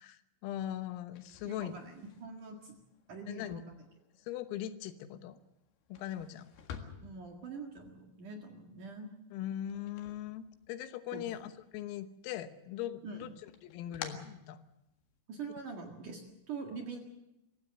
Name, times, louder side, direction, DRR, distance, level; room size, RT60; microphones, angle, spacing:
voice 1, 0.0-1.8 3.3-3.6 4.3-5.4 5.9-6.5 9.3-13.3 13.6-14.6, left 11 dB, 85° left, 10 dB, 3.8 m, -40 dB
sound 1, 1.1-11.0 11.3-12.2 12.6-15.2, left 7 dB, 60° left, 3.2 m, -52 dB
voice 2, 1.4-2.8 3.1-3.8 7.0-9.1 11.1-11.3 13.0-13.2 15.3-17.0, right 4 dB, 55° right, 2 dB, 2.6 m, -44 dB
24.0 x 16.0 x 7.7 m, 0.88 s
omnidirectional pair, 6.0 m